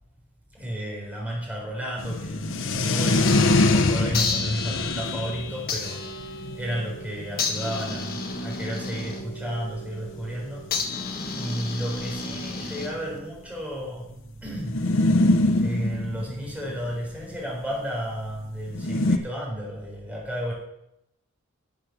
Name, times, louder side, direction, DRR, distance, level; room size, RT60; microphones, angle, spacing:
voice 1, 0.5-11.0 11.3-20.5, equal, 5° right, -3 dB, 3.8 m, -33 dB
sound 1, 2.0-8.1 8.8-8.9 9.0-9.1 9.3-9.5 10.4-10.5 10.8-10.9 11.7-13.2 14.6-17.3 18.7-19.2, left 2 dB, 60° left, 0.8 m, -24 dB
sound 2, 3.1-3.7 4.1-13.3, left 4 dB, 40° left, 1.3 m, -33 dB
11.5 x 6.6 x 6.0 m, 0.83 s
head